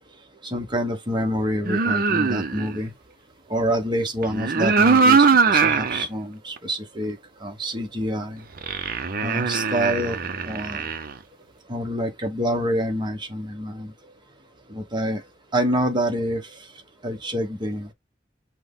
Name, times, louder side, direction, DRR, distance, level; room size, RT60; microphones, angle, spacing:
voice 1, 0.4-2.9 3.5-8.4 9.2-10.2 10.4-10.8 11.7-13.9 14.7-15.2 15.5-16.4 17.0-17.9, equal, 25° right, 1.1 m, -27 dB
sound 1, 1.7-2.8 4.2-6.1 6.6-6.7 8.6-11.1, right 5 dB, 50° right, 0.6 m, -21 dB
6.1 x 2.2 x 3.6 m
head